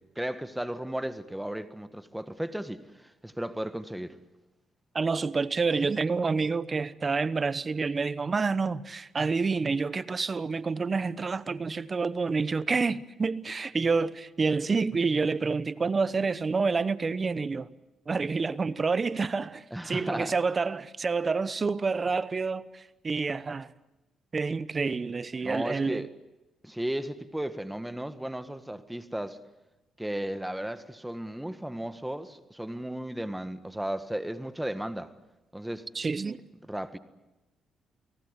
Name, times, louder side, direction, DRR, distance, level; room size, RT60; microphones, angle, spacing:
voice 1, 0.0-4.1 19.7-20.3 25.4-26.1 26.6-29.4 30.0-35.1 35.5-35.8 36.7-37.0, right 1 dB, 5° right, 1.6 m, -35 dB
voice 2, 4.9-17.7 18.1-23.7 24.3-26.0 35.9-36.4, right 4 dB, 35° right, 1.0 m, -28 dB
29.5 x 18.5 x 8.3 m
cardioid pair, 90°, 0 cm